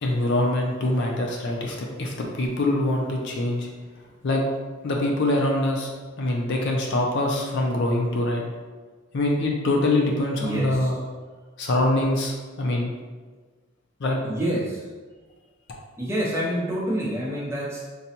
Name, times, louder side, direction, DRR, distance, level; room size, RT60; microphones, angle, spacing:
voice 1, 0.0-3.7 4.2-4.4 4.8-5.9 6.2-8.4 9.1-11.0 11.6-12.9 14.0-14.2, left 1 dB, 55° left, 0 dB, 0.5 m, -24 dB
voice 2, 10.4-10.9 14.2-14.9 16.0-17.8, right 1 dB, 10° right, -6 dB, 0.6 m, -27 dB
3.9 x 2.2 x 2.8 m, 1.4 s
head